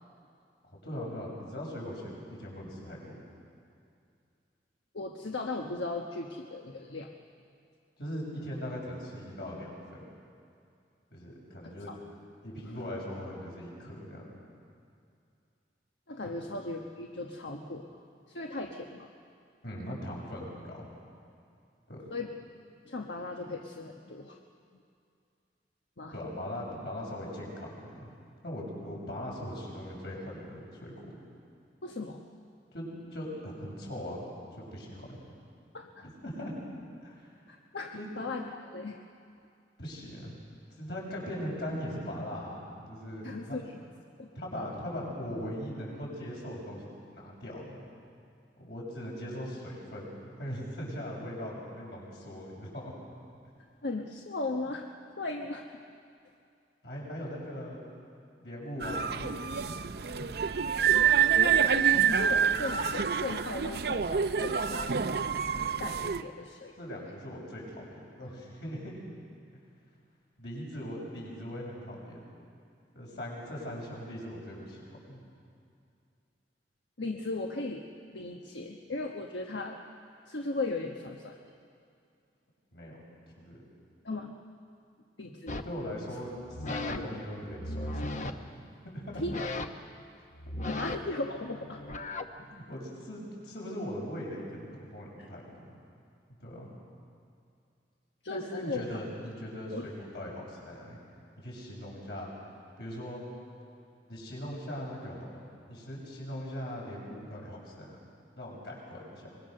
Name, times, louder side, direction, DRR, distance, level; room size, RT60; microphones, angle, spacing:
voice 1, 0.6-3.2 8.0-10.0 11.1-11.9 12.4-14.4 16.2-16.3 19.6-20.9 21.9-22.1 26.1-28.1 28.4-31.1 32.7-34.2 34.5-35.2 36.0-36.6 37.0-37.3 37.9-38.1 39.8-40.4 40.8-43.6 44.4-47.8 48.6-52.9 56.8-57.8 58.4-59.8 60.2-60.3 66.8-68.8 70.4-72.3 72.9-75.2 82.7-83.0 83.4-83.6 85.6-88.3 88.8-89.2 92.4-95.8 96.4-96.7 98.3-101.0 101.4-102.3 102.8-103.2 104.1-108.0 108.4-109.3, equal, 65° left, -3 dB, 6.9 m, -40 dB
voice 2, 4.9-7.1 11.9-12.0 12.7-12.8 16.1-18.0 18.3-19.1 22.1-22.3 22.8-24.4 26.0-26.1 31.8-32.2 35.7-36.0 37.5-39.0 43.2-43.6 44.2-44.3 53.8-54.9 55.2-55.7 61.3-64.9 65.8-67.1 77.0-77.8 78.1-79.8 80.3-81.4 84.0-84.3 85.2-85.5 86.9-87.2 89.1-89.3 90.7-91.8 95.2-95.3 98.2-98.8 99.7-99.9, left 2 dB, 90° left, 1 dB, 1.3 m, -37 dB
sound 1, 58.8-66.2, right 8 dB, 60° right, 0.6 m, -27 dB
sound 2, 85.5-85.8 86.4-87.0 87.4-88.3 89.1-89.9 90.3-92.3, left 2 dB, 45° left, 1.0 m, -37 dB
24.5 x 22.0 x 6.7 m, 2.4 s
head